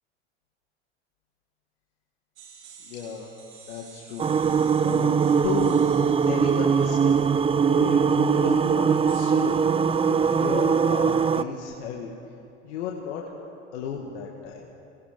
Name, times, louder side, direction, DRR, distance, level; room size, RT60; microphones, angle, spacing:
sound 1, 2.4-8.1 9.1-9.3, right 6 dB, 75° right, 3.8 m, -50 dB
voice 1, 2.8-3.3 3.7-4.3 4.8-5.1 5.4-5.8 6.3-7.3 7.7-9.6 10.1-12.1 12.6-13.2 13.7-14.7, left 7 dB, 70° left, -1 dB, 2.3 m, -34 dB
sound 2, 4.2-11.4, right 6 dB, 15° right, 0.5 m, -21 dB
25.5 x 20.0 x 5.4 m, 2.6 s
hypercardioid pair, 80°, 35 cm